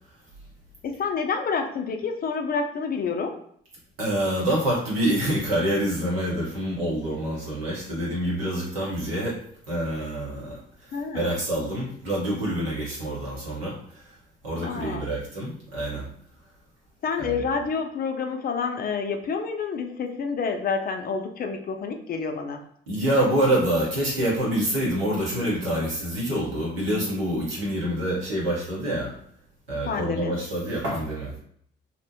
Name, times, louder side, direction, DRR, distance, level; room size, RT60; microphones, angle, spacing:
voice 1, 0.8-3.4 10.9-11.3 14.6-15.1 17.0-22.6 29.8-30.4, left 5 dB, 30° left, 5 dB, 0.4 m, -28 dB
voice 2, 4.0-9.4 9.7-10.6 11.1-14.0 14.4-16.1 17.2-17.3 22.9-29.1 29.7-31.3, right 1 dB, 90° right, -6 dB, 0.8 m, -26 dB
2.6 x 2.1 x 2.7 m, 0.65 s
figure-of-eight pair, 45°, 29 cm